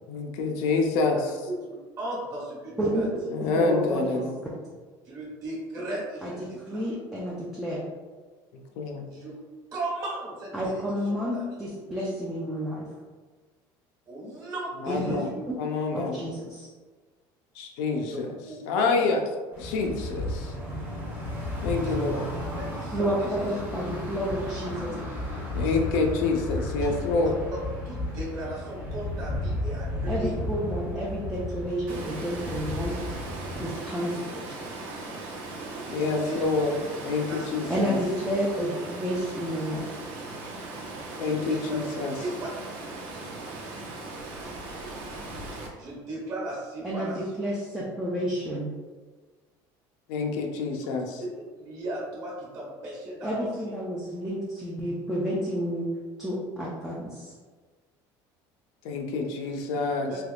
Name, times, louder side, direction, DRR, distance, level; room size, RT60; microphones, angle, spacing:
voice 1, 0.1-1.3 3.3-4.3 8.8-9.1 14.8-15.3 15.6-16.2 17.6-18.3 18.7-19.2 19.6-20.5 21.6-22.3 25.5-27.4 35.9-36.8 37.0-38.0 41.2-42.1 50.1-51.2 58.8-60.1, left 3 dB, 80° left, 2 dB, 0.5 m, -27 dB
voice 2, 1.7-3.1 5.0-6.8 9.1-9.4 9.7-11.6 14.1-15.3 18.1-18.9 19.6-19.7 21.8-22.1 22.6-23.5 26.8-26.9 27.8-30.3 35.9-36.4 37.3-37.5 41.2-41.6 42.2-42.5 42.9-43.0 45.8-47.2 51.2-51.3 51.6-53.5 60.1-60.2, right 2 dB, 40° right, -5 dB, 1.2 m, -37 dB
voice 3, 3.5-4.2 6.2-7.8 10.5-12.9 14.9-15.1 15.5-15.6 15.9-16.7 22.9-24.9 30.1-33.0 33.6-34.6 37.7-39.9 46.8-48.7 53.2-55.9 56.2-57.3, equal, 5° right, -6 dB, 0.3 m, -30 dB
sound 1, 19.5-33.7, left 1 dB, 20° right, 0.7 m, -33 dB
Water, 31.9-45.7, right 2 dB, 70° right, 0.8 m, -38 dB
3.4 x 3.0 x 2.4 m, 1.4 s
cardioid pair, 175°, 9 cm